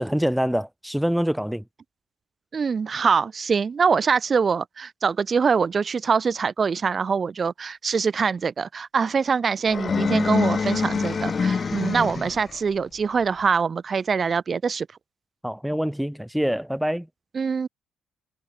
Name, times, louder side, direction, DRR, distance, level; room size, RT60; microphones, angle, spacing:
voice 1, 0.0-1.6 15.4-17.1, equal, ahead, 2.4 m, -25 dB
voice 2, 2.5-14.9 17.3-17.7, right 5 dB, 40° right, 2.5 m, -24 dB
sound 1, 9.7-12.6, left 5 dB, 40° left, 2.6 m, -25 dB
cardioid pair, 90°, 0 cm